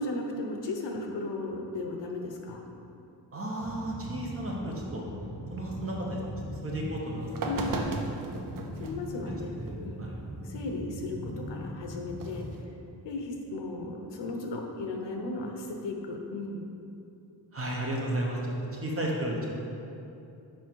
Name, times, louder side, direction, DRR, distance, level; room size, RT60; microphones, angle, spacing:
voice 1, 0.0-2.7 7.4-7.8 8.8-10.0 10.4-12.5 13.0-16.6, left 2 dB, 70° left, 2 dB, 0.9 m, -35 dB
voice 2, 3.3-5.0 5.5-6.2 6.5-7.9 9.5-9.7 10.0-10.2 17.5-19.5, right 1 dB, 30° right, -2 dB, 1.1 m, -33 dB
sound 1, 3.6-12.6, equal, 5° right, 0.3 m, -40 dB
sound 2, 6.8-6.9 7.3-9.0 9.7-9.8 12.1-12.6, right 3 dB, 45° right, 0.6 m, -35 dB
6.3 x 5.0 x 4.6 m, 2.8 s
wide cardioid pair, 140°, 44 cm